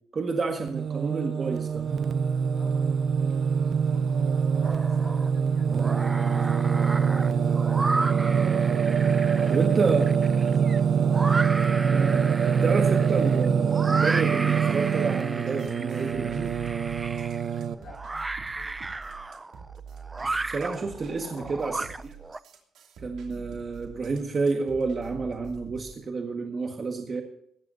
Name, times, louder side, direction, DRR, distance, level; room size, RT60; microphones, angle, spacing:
voice 1, 0.1-1.9 9.5-10.1 11.8-12.2 12.6-16.5 20.2-22.1 23.0-27.2, right 4 dB, 40° right, 3 dB, 1.6 m, -30 dB
Singing, 0.6-17.7, right 6 dB, 55° right, 0.8 m, -24 dB
voice 2, 3.9-8.2 8.7-10.7 17.7-18.9 20.6-21.5 23.3-23.5, left 3 dB, 60° left, 1 dB, 6.5 m, -48 dB
sound 1, 4.6-5.3 5.7-22.4, right 3 dB, 20° right, 0.5 m, -34 dB
sound 2, 15.5-25.9, right 6 dB, 75° right, 2.7 m, -46 dB
20.0 x 14.5 x 2.7 m, 0.75 s
cardioid pair, 90°, 0 cm